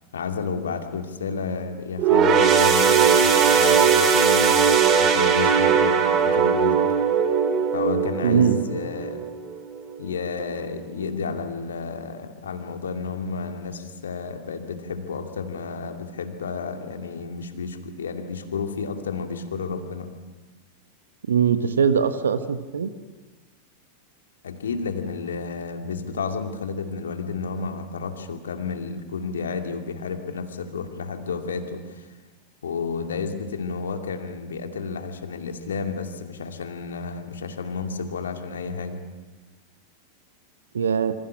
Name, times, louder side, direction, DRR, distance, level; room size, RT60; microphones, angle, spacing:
voice 1, 0.1-6.8 7.7-9.3 10.0-20.1 24.4-32.1 32.6-39.0, left 5 dB, 65° left, 5 dB, 2.5 m, -31 dB
sound 1, 2.0-9.7 10.1-10.3 11.2-11.3, right 7 dB, 35° right, 3.4 m, -19 dB
voice 2, 8.2-8.6 21.3-22.9 40.7-41.1, right 7 dB, 70° right, 11 dB, 1.2 m, -21 dB
28.0 x 26.0 x 6.2 m, 1.2 s
figure-of-eight pair, 90°, 0 cm